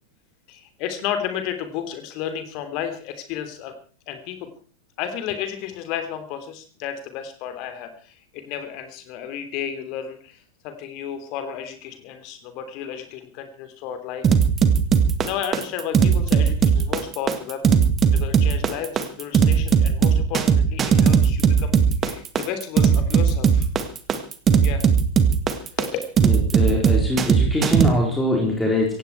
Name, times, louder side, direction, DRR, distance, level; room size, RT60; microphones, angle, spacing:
voice 1, 0.5-3.7 4.1-4.5 5.0-14.3 15.2-17.6 18.1-21.7 22.0-23.7 24.6-24.8 25.8-25.9, left 9 dB, 40° left, 8 dB, 3.3 m, -32 dB
sound 1, 14.2-27.9, right 7 dB, 25° right, 1.9 m, -17 dB
voice 2, 26.2-29.0, left 1 dB, 5° left, -1 dB, 4.4 m, -23 dB
17.0 x 16.0 x 4.7 m, 0.41 s
figure-of-eight pair, 90°, 0 cm